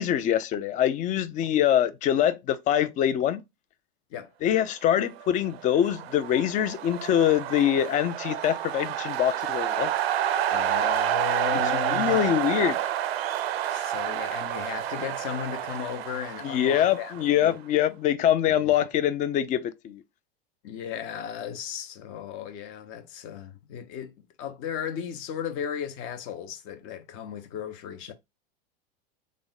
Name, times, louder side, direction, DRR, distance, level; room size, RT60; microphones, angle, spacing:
voice 1, 0.0-3.4 4.4-9.9 11.5-12.8 16.4-20.0, left 10 dB, 25° left, 0.4 m, -24 dB
sound 1, 5.5-17.5, right 11 dB, 85° right, 0.5 m, -29 dB
voice 2, 10.5-12.2 13.7-17.6 18.6-18.7 20.6-24.1 24.4-28.1, left 9 dB, 45° left, 0.8 m, -35 dB
3.5 x 2.1 x 3.9 m
hypercardioid pair, 120°, 30 cm